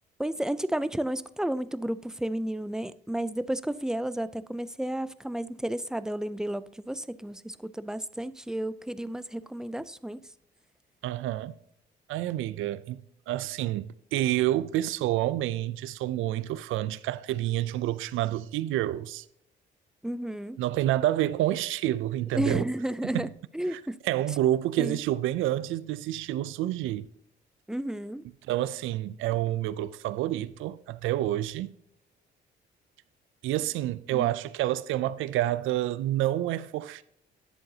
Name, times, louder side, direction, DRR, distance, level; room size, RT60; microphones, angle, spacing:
voice 1, 0.2-10.2 20.0-20.6 22.3-23.3 23.5-24.0 24.8-25.0 27.7-28.2 34.1-34.3, right 1 dB, 5° right, 0.4 m, -32 dB
voice 2, 11.0-11.5 12.1-19.2 20.6-22.6 23.1-23.3 23.7-27.1 28.5-31.7 33.4-37.0, right 14 dB, 85° right, 0.4 m, -28 dB
10.5 x 7.8 x 2.8 m
cardioid pair, 90°, 20 cm